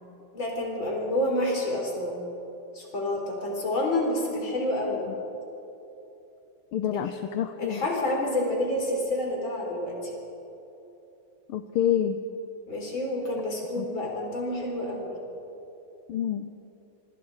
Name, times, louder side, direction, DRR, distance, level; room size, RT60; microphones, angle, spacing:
voice 1, 0.3-2.2 2.7-5.0 6.9-7.1 7.6-10.1 12.7-15.2, left 1 dB, 60° left, 0 dB, 4.9 m, -28 dB
voice 2, 6.7-7.8 11.5-12.2 13.8-13.9 16.1-16.5, left 10 dB, 80° left, 8 dB, 1.6 m, -27 dB
26.5 x 24.5 x 4.8 m, 3.0 s
omnidirectional pair, 2.4 m